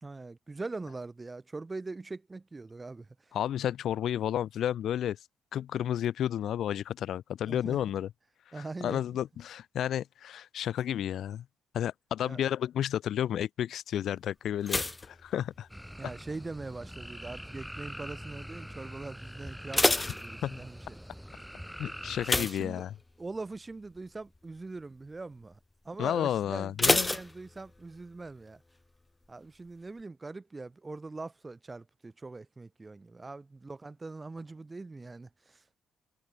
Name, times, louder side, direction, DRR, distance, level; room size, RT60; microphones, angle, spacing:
voice 1, 0.0-3.1 7.5-7.8 8.5-9.2 12.2-12.4 16.0-21.0 22.3-22.8 23.2-25.6 25.8-28.6 29.3-35.6, right 3 dB, 25° right, 3.7 m, -42 dB
voice 2, 3.3-5.2 5.5-8.1 8.6-11.4 11.7-15.7 20.4-20.6 21.8-22.9 26.0-27.1, left 10 dB, 70° left, 1.2 m, -32 dB
sound 1, 14.6-16.1 16.4-16.9 17.5-17.9 18.2-18.3 18.7-18.8 19.4-20.9 22.2-23.4 23.7-24.0 24.4-24.5 26.8-28.0 28.3-28.4, left 2 dB, 15° left, 1.6 m, -29 dB
sound 2, 15.7-22.3, equal, ahead, 1.6 m, -44 dB
cardioid pair, 90°, 0 cm